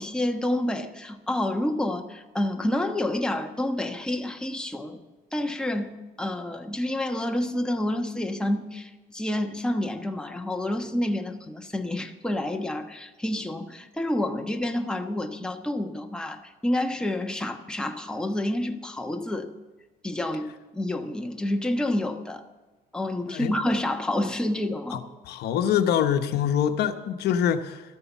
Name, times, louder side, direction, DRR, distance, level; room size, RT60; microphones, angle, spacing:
voice 1, 0.0-5.0 5.3-19.5 20.0-20.5 20.7-22.4 22.9-25.0, left 1 dB, 5° left, 1.2 m, -28 dB
voice 2, 24.9-27.8, left 9 dB, 75° left, 1.0 m, -25 dB
13.5 x 9.6 x 7.2 m
cardioid pair, 110°, 17 cm